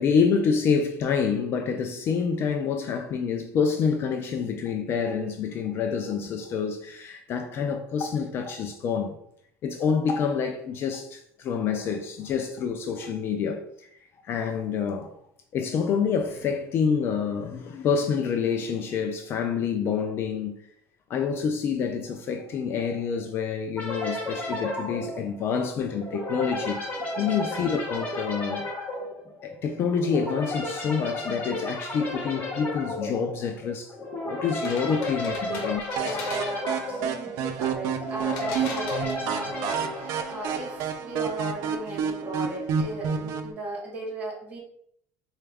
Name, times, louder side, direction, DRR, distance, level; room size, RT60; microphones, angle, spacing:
voice 1, 0.0-9.2 9.6-13.9 14.2-15.1 15.5-20.6 21.1-26.8 27.2-28.7 29.4-34.0 34.3-35.8 36.1-36.2, left 6 dB, 40° left, 0.3 m, -27 dB
sound 1, 23.8-40.9, left 1 dB, 25° left, 0.9 m, -33 dB
voice 2, 27.2-27.5 35.3-35.7 35.9-44.6, right 1 dB, 25° right, 1.3 m, -36 dB
sound 2, 34.5-36.8 38.3-39.6, left 4 dB, 75° left, 0.9 m, -40 dB
sound 3, 36.0-43.5, right 7 dB, 65° right, 0.4 m, -30 dB
4.1 x 2.3 x 3.3 m
cardioid pair, 150°, 6 cm